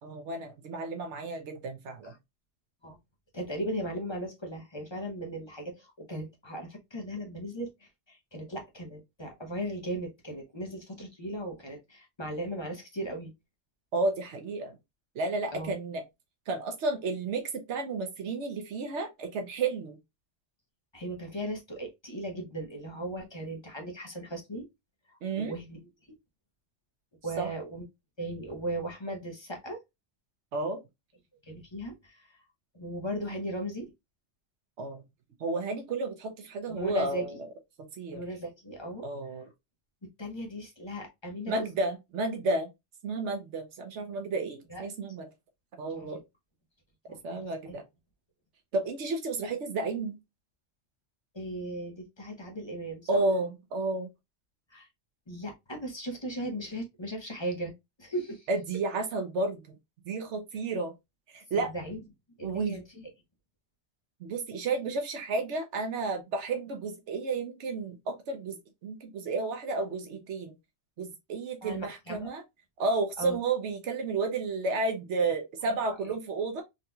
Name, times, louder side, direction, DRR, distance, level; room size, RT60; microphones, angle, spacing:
voice 1, 0.0-2.1 13.9-14.8 15.1-16.0 16.5-20.0 25.2-25.5 27.4-27.5 30.5-30.8 34.8-35.0 35.4-37.4 38.0-38.2 39.0-39.5 41.5-42.7 43.0-45.3 45.8-46.2 47.2-47.8 48.7-50.2 53.1-54.1 58.5-59.8 60.0-60.9 61.3-61.7 62.4-62.8 64.2-70.5 71.0-72.4 72.8-76.6, right 3 dB, 80° right, 1.0 m, -32 dB
voice 2, 3.3-13.3 15.5-15.7 20.9-24.6 25.1-25.8 27.2-27.8 28.2-29.8 31.5-32.4 32.7-33.9 36.7-37.4 38.1-39.1 40.2-41.6 44.7-44.9 46.0-46.2 47.1-47.2 47.7-47.8 51.3-53.2 54.7-54.9 55.3-57.7 58.0-58.5 61.6-62.0 62.4-63.1 71.6-72.3 73.2-73.4, right 1 dB, 25° left, 0.8 m, -37 dB
3.7 x 2.8 x 2.2 m
omnidirectional pair, 1.2 m